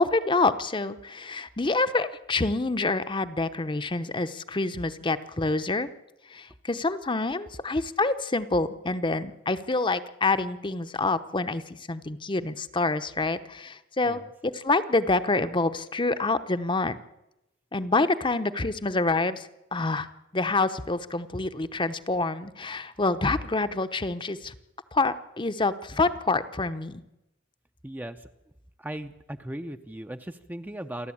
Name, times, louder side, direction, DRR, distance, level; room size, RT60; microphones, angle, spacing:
voice 1, 0.0-5.9 6.3-17.0 17.7-20.1 20.3-24.5 24.9-27.0, left 3 dB, 25° left, 11 dB, 0.9 m, -27 dB
voice 2, 27.8-28.3 28.8-31.1, right 1 dB, 10° right, 8 dB, 0.7 m, -37 dB
28.5 x 11.5 x 8.6 m, 0.92 s
head